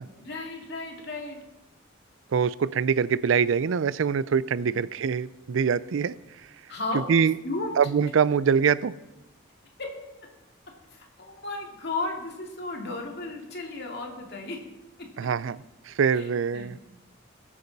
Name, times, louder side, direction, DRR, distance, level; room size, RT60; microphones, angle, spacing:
voice 1, 0.2-1.4 4.7-4.8 6.7-7.0 7.4-7.7 10.9-14.6 15.0-15.1 16.1-16.8, left 2 dB, 55° left, 1 dB, 2.4 m, -34 dB
voice 2, 2.3-6.1 7.1-7.3 7.8-8.9 15.2-15.6 15.9-16.8, right 6 dB, 70° right, 19 dB, 0.4 m, -24 dB
22.5 x 8.5 x 4.1 m, 1.0 s
head